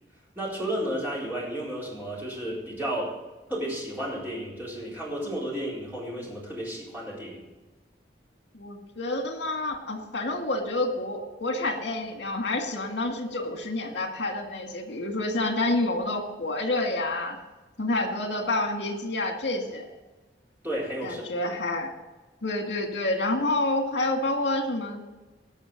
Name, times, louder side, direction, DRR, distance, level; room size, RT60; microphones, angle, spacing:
voice 1, 0.4-3.2 3.5-7.4 20.6-21.5, right 1 dB, 10° right, -6 dB, 4.1 m, -32 dB
voice 2, 8.5-17.4 17.8-19.8 21.0-21.9 22.4-25.1, left 2 dB, 80° left, 4 dB, 2.0 m, -28 dB
18.5 x 6.5 x 5.2 m, 1.2 s
head